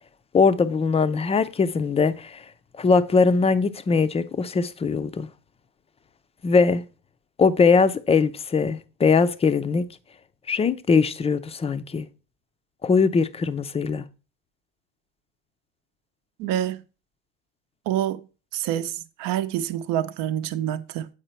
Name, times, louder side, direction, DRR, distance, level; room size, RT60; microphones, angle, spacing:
voice 1, 0.3-2.4 2.8-5.3 6.4-6.8 7.4-9.8 10.5-12.1 12.8-14.0, left 5 dB, 15° left, 0.5 m, -21 dB
voice 2, 16.4-16.8 17.9-18.2 18.5-18.9 19.2-21.1, right 11 dB, 60° right, 0.8 m, -26 dB
8.0 x 4.9 x 4.3 m
supercardioid pair, 110°, 38 cm